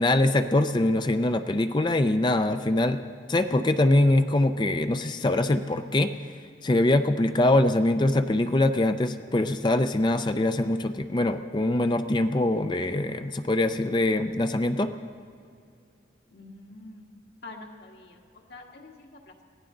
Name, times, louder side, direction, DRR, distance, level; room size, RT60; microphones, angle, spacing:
voice 1, 0.0-6.2 6.6-14.9, left 1 dB, 25° left, 9 dB, 0.5 m, -23 dB
voice 2, 16.3-17.1 17.4-19.4, left 2 dB, 65° left, 1 dB, 1.9 m, -46 dB
22.5 x 16.5 x 3.9 m, 2.3 s
head